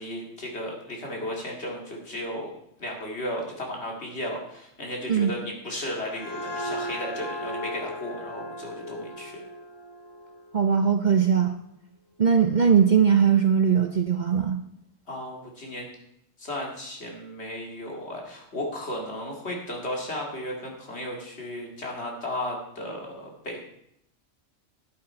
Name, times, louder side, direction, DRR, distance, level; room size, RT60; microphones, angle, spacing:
voice 1, 0.0-2.5 2.8-9.4 15.1-15.9 16.4-23.6, left 1 dB, 60° left, 0 dB, 2.6 m, -34 dB
sound 1, 5.7-11.2, equal, 25° left, 0.6 m, -37 dB
voice 2, 10.5-11.5 12.2-14.6, right 7 dB, 45° right, 6 dB, 0.7 m, -20 dB
12.5 x 8.8 x 4.4 m, 0.76 s
omnidirectional pair, 1.3 m